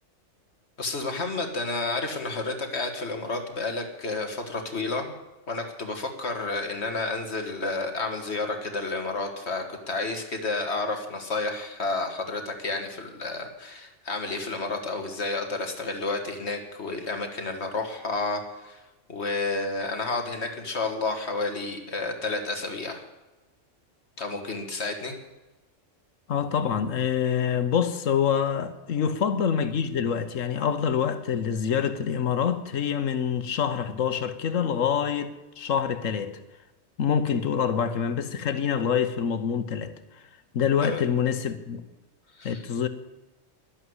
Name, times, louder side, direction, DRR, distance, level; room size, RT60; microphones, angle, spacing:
voice 1, 0.8-5.1 5.5-18.8 19.1-23.0 24.2-25.2 40.8-41.0 42.4-42.6, left 3 dB, 60° left, 2.1 m, -31 dB
voice 2, 26.3-36.4 37.0-40.0 40.5-41.8 42.4-42.9, left 7 dB, 90° left, 1.4 m, -26 dB
11.5 x 11.5 x 8.0 m
omnidirectional pair, 1.3 m